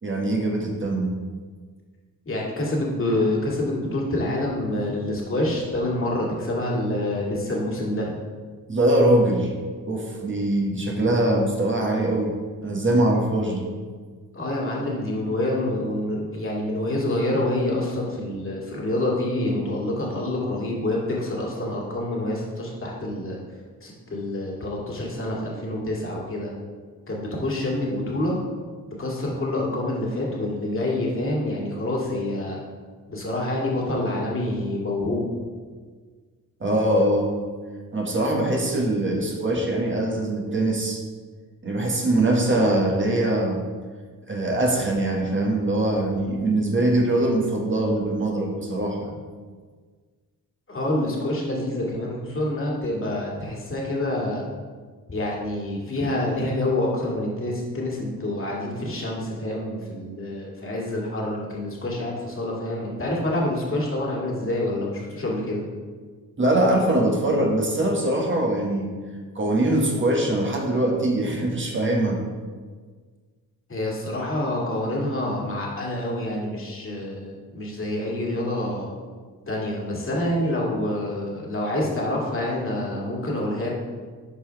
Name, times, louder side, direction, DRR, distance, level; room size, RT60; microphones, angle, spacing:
voice 1, 0.0-1.1 8.7-9.5 9.8-13.7 36.6-37.4 37.9-41.0 41.6-43.6 44.3-49.1 66.4-68.9 69.4-72.2, right 1 dB, 35° right, 0 dB, 1.9 m, -22 dB
voice 2, 2.3-8.1 14.3-23.4 23.8-26.5 27.1-28.4 29.0-32.6 33.1-35.3 50.7-54.4 55.1-65.6 73.7-78.9 79.5-83.7, left 1 dB, 35° left, -3 dB, 2.3 m, -27 dB
11.5 x 4.7 x 3.4 m, 1.5 s
cardioid pair, 75°, 35 cm